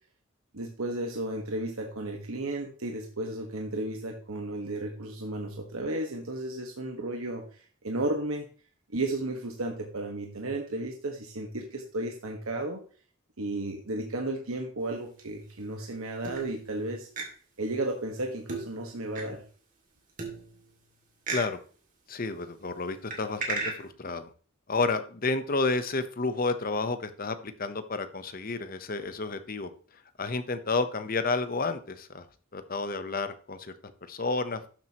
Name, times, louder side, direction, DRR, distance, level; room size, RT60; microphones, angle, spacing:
voice 1, 0.5-8.5 8.9-12.8 13.4-17.1 17.6-19.4, right 2 dB, 85° right, 2 dB, 1.4 m, -33 dB
sound 1, 14.8-15.6 16.2-16.8 17.2-17.3 18.5-19.2 20.2-20.9 21.3-21.5 23.1-23.7, right 3 dB, 40° right, 2.4 m, -36 dB
voice 2, 21.3-21.6 22.1-24.3 24.7-29.7 30.2-32.3 32.5-33.7 34.1-34.6, left 3 dB, 40° left, 10 dB, 0.9 m, -30 dB
12.5 x 7.6 x 3.0 m, 0.41 s
head